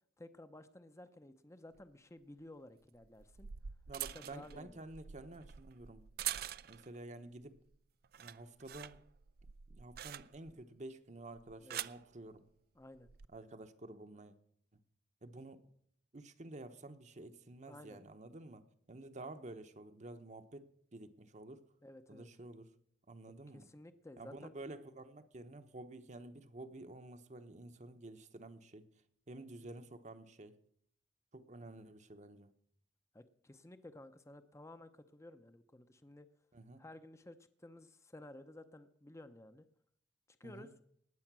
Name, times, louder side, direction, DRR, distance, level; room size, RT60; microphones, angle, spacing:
voice 1, 0.2-3.5 4.1-4.9 11.6-11.8 12.7-13.1 17.7-18.0 21.8-22.3 23.5-24.5 33.1-36.3 36.8-39.6 40.3-40.7, left 1 dB, 15° left, 10 dB, 0.7 m, -54 dB
sound 1, 1.7-1.8 3.0-7.0 7.4-7.7 8.0-10.6 11.4-12.0 12.9-13.3, right 11 dB, 55° right, 0.4 m, -45 dB
voice 2, 3.9-6.0 6.6-7.6 8.2-9.0 9.7-12.4 13.3-14.3 15.2-15.6 16.1-18.6 18.9-21.6 22.1-22.7 23.1-23.7 24.2-28.9 29.3-30.6 31.3-32.5 36.5-36.8 40.4-40.7, right 2 dB, 40° right, 9 dB, 1.0 m, -51 dB
19.5 x 7.8 x 6.1 m, 0.66 s
head